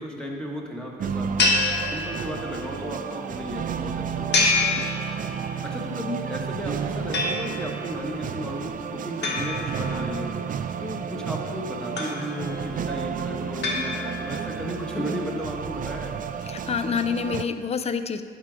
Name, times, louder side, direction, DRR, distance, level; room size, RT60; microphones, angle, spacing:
voice 1, 0.0-1.5 1.8-4.4 5.6-10.3 10.8-16.2, equal, 5° left, -1 dB, 1.4 m, -34 dB
sound 1, 1.0-17.4, right 7 dB, 45° right, 0.4 m, -32 dB
sound 2, 1.4-2.6 4.3-5.6 7.1-7.8 9.2-10.4 12.0-12.7 13.6-14.5, left 3 dB, 60° left, 1.2 m, -27 dB
voice 2, 16.5-18.2, left 6 dB, 30° left, 11 dB, 0.5 m, -27 dB
11.0 x 3.7 x 5.0 m, 2.1 s
cardioid pair, 90°, 20 cm